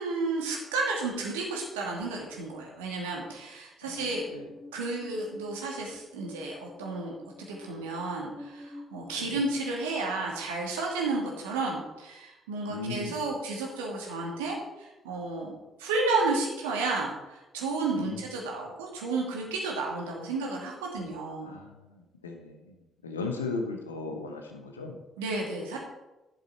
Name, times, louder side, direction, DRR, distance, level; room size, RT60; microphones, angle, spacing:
voice 1, 0.0-4.2 4.7-7.1 7.5-21.5 25.2-25.8, right 3 dB, 75° right, -1 dB, 2.3 m, -32 dB
sound 1, 3.9-10.0, left 2 dB, 10° right, 2.0 m, -49 dB
voice 2, 12.7-13.2 17.9-18.2 21.4-22.7 23.0-25.0, left 3 dB, 85° left, 4 dB, 1.1 m, -36 dB
11.5 x 7.2 x 4.4 m, 1.0 s
figure-of-eight pair, 40°, 0 cm